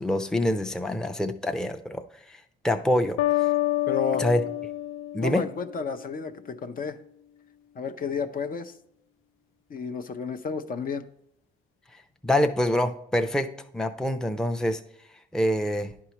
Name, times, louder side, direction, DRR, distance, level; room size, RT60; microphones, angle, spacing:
voice 1, 0.0-2.0 2.6-3.2 4.2-4.4 5.1-5.4 12.2-14.8 15.3-15.9, left 1 dB, 5° left, 6 dB, 0.6 m, -25 dB
sound 1, 3.2-6.0, left 15 dB, 85° left, 0.4 m, -28 dB
voice 2, 3.9-4.2 5.2-7.0 7.8-8.7 9.7-11.0, left 5 dB, 45° left, 7 dB, 0.6 m, -31 dB
11.0 x 4.7 x 2.9 m, 0.76 s
cardioid pair, 90°, 20 cm